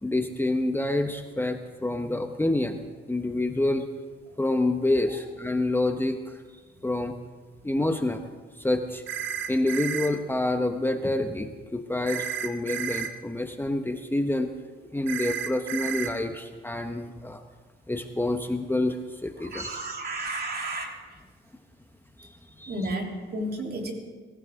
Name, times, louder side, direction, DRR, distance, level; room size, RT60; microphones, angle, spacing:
voice 1, 0.0-2.8 3.1-3.8 4.4-6.4 6.8-7.2 7.6-8.3 8.6-9.0 9.5-14.5 14.9-17.4 17.9-19.7 22.2-22.7, left 2 dB, 10° left, 6 dB, 1.0 m, -27 dB
sound 1, 9.1-10.1 12.1-13.1 15.1-16.1, right 9 dB, 70° right, 1.1 m, -32 dB
voice 2, 19.4-20.9 22.7-23.9, right 1 dB, 50° right, 1 dB, 3.3 m, -32 dB
24.0 x 15.0 x 3.7 m, 1.4 s
cardioid pair, 90°, 20 cm